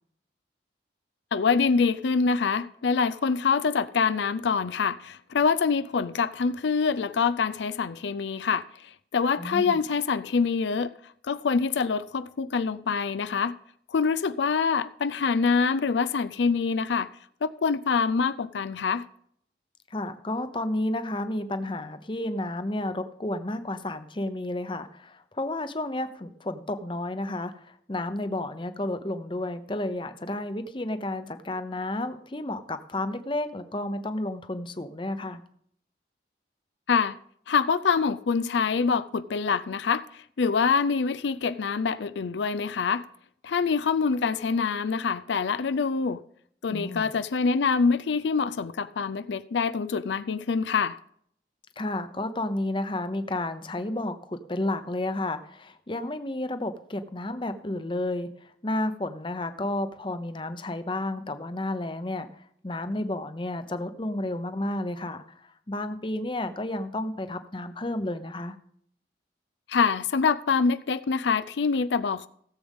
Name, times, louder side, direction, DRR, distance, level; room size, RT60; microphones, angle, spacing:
voice 1, 1.3-8.7 9.1-10.9 11.3-13.6 13.9-17.1 17.4-19.0 36.9-37.2 37.5-43.1 43.4-46.2 46.6-51.0 69.7-72.3, left 5 dB, 85° left, 0.5 m, -25 dB
voice 2, 9.4-9.8 19.9-35.4 46.7-47.1 51.8-68.5, left 1 dB, 30° left, 0.8 m, -31 dB
17.0 x 7.8 x 3.6 m
head